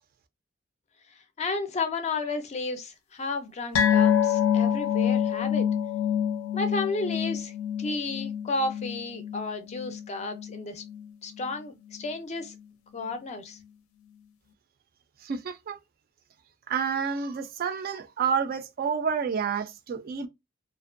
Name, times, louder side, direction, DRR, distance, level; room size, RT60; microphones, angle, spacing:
voice 1, 1.4-5.7 6.5-7.5 7.8-10.8 11.2-12.5 12.9-13.6, left 3 dB, 35° left, 0.4 m, -32 dB
sound 1, 3.7-10.6 10.8-11.1 11.4-11.5, left 9 dB, 85° left, 0.5 m, -26 dB
voice 2, 15.2-15.8 16.7-20.3, right 6 dB, 45° right, 0.4 m, -29 dB
2.5 x 2.1 x 2.5 m
head